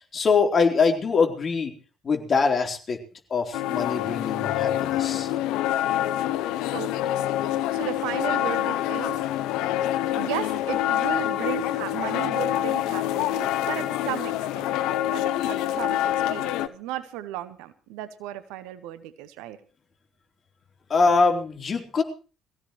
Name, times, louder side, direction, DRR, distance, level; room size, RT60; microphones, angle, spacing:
voice 1, 0.1-1.7 2.0-3.0 3.3-5.3 20.9-22.0, left 4 dB, 40° left, 3 dB, 3.9 m, -23 dB
sound 1, 3.5-16.7, left 13 dB, 70° left, 0.8 m, -26 dB
voice 2, 6.7-7.3 7.7-9.2 10.2-14.7 15.1-19.6, right 13 dB, 70° right, 13 dB, 1.3 m, -35 dB
22.0 x 16.0 x 3.2 m, 0.36 s
hypercardioid pair, 50°, 0 cm